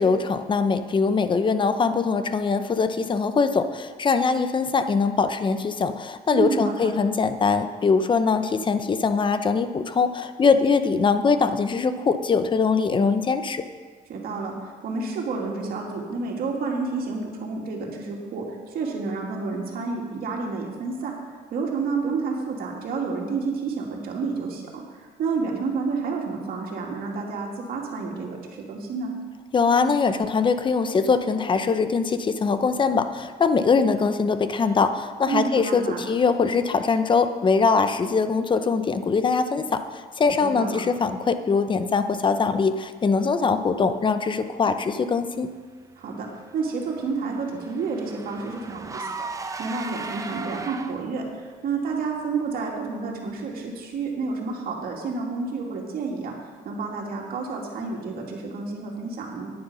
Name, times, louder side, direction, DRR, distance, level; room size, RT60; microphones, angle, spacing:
voice 1, 0.0-13.6 29.5-45.5, left 5 dB, 30° left, 10 dB, 0.7 m, -22 dB
voice 2, 6.3-6.9 14.1-14.5 14.8-21.1 21.5-24.8 25.2-29.1 35.3-36.0 40.4-40.8 46.0-46.3 46.5-56.3 56.6-59.5, right 4 dB, 60° right, -1 dB, 2.5 m, -30 dB
Car / Engine, 46.2-51.3, right 4 dB, 20° right, 0.7 m, -37 dB
9.8 x 9.6 x 5.5 m, 1.5 s
cardioid pair, 110°, 17 cm